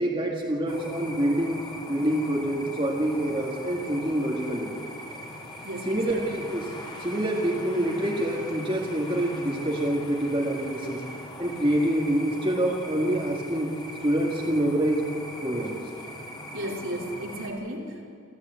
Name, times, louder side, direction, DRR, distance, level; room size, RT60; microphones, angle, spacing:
voice 1, 0.0-1.6 1.9-4.7 5.9-11.0 11.4-13.7 14.0-15.1 15.4-15.8, right 1 dB, 25° right, -2 dB, 2.0 m, -26 dB
sound 1, 0.7-17.5, left 1 dB, 20° left, 3.0 m, -41 dB
voice 2, 5.6-6.3 16.5-18.2, right 1 dB, 70° right, -1 dB, 3.4 m, -34 dB
27.0 x 14.0 x 8.2 m, 2.3 s
head